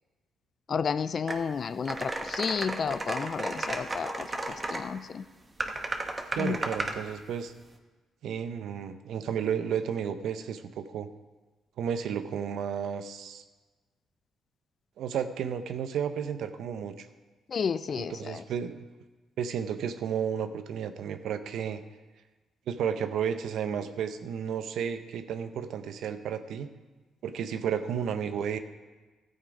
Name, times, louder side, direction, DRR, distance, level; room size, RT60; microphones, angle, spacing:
voice 1, 0.7-4.3 4.7-5.2 6.4-6.6 17.5-18.4, left 6 dB, 45° left, 14 dB, 0.5 m, -31 dB
sound 1, 1.3-1.4 1.8-4.8 5.6-7.0, right 2 dB, 25° right, 1.1 m, -34 dB
voice 2, 6.4-7.5 8.2-11.1 11.8-13.4 15.0-17.1 18.0-18.8 19.4-21.8 22.7-26.7 27.2-28.6, right 8 dB, 75° right, 9 dB, 0.8 m, -32 dB
13.5 x 7.4 x 4.9 m, 1.2 s
cardioid pair, 90°, 0 cm